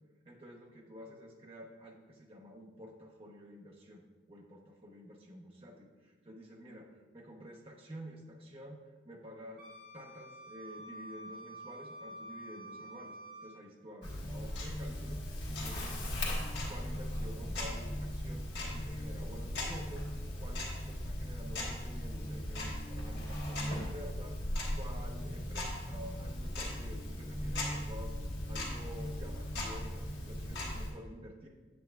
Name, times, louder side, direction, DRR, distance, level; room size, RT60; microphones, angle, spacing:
voice 1, 0.2-4.0 4.3-9.6 9.9-13.2 13.4-24.4 24.7-28.2 28.5-31.5, equal, 30° right, -1 dB, 0.8 m, -50 dB
Wind instrument woodwind instrument, 9.6-13.6, right 1 dB, 50° right, 2.1 m, -48 dB
Tick-tock, 14.0-30.9, left 1 dB, 75° left, 1.6 m, -38 dB
7.7 x 7.7 x 2.3 m, 1.3 s
head